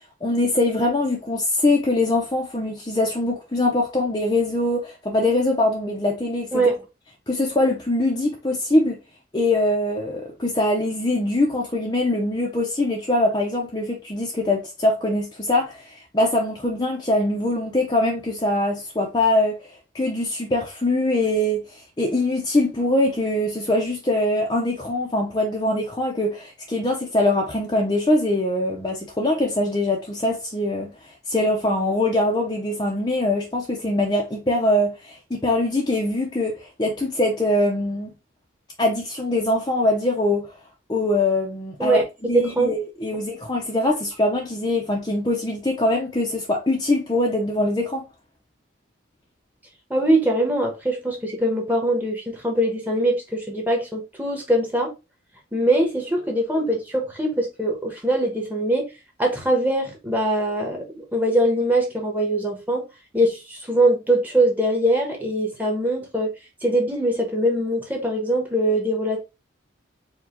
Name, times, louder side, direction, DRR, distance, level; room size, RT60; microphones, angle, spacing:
voice 1, 0.2-6.6 7.3-9.0 9.3-19.5 19.9-21.6 22.0-30.9 31.3-38.1 38.8-40.5 40.9-48.0, left 1 dB, 20° left, 0.6 m, -23 dB
voice 2, 42.3-42.7 49.9-54.9 55.5-58.9 59.2-60.9 61.1-62.9 63.1-66.3 66.6-69.2, right 1 dB, 10° right, 1.1 m, -22 dB
4.7 x 2.3 x 3.7 m
head